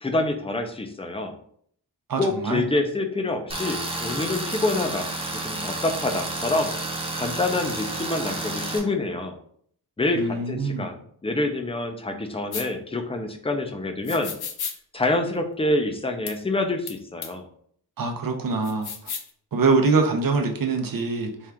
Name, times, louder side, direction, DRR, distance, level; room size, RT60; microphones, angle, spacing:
voice 1, 0.0-1.4 2.2-6.7 7.1-9.4 10.0-14.3 14.9-17.4, left 2 dB, 15° left, 5 dB, 0.4 m, -27 dB
voice 2, 2.1-2.6 10.1-10.9 18.0-18.9 19.5-21.5, right 4 dB, 55° right, 4 dB, 0.7 m, -24 dB
Tools, 3.5-8.8, right 2 dB, 15° right, 0.8 m, -31 dB
sound 1, 12.5-12.7 14.1-14.8 16.3-16.4 16.9-17.0 17.2-17.3 18.6-19.3, left 7 dB, 70° left, 0.5 m, -33 dB
4.4 x 2.4 x 3.4 m, 0.63 s
wide cardioid pair, 115°, 40 cm